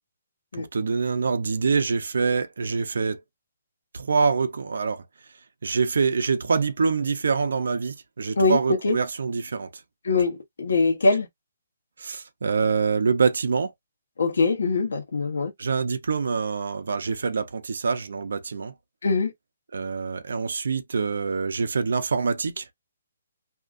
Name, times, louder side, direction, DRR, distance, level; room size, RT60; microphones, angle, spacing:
voice 1, 0.6-3.2 3.9-5.0 5.6-9.8 12.0-13.7 15.6-18.7 19.7-22.7, right 5 dB, 65° right, 0.5 m, -25 dB
voice 2, 8.4-9.0 10.0-11.3 14.2-15.5 19.0-19.3, left 3 dB, 75° left, 1.2 m, -22 dB
2.8 x 2.4 x 2.6 m
hypercardioid pair, 180°, 0 cm